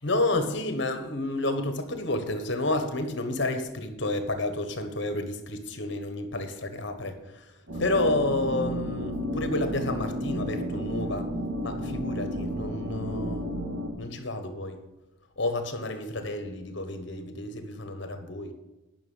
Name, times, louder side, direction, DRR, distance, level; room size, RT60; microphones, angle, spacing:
voice 1, 0.0-7.4 7.7-11.3 11.6-13.5 14.0-14.8 15.4-18.5, left 2 dB, 55° left, 7 dB, 1.3 m, -30 dB
sound 1, 7.7-13.9, equal, 75° right, 3.6 m, -32 dB
10.5 x 6.0 x 8.9 m, 1.0 s
head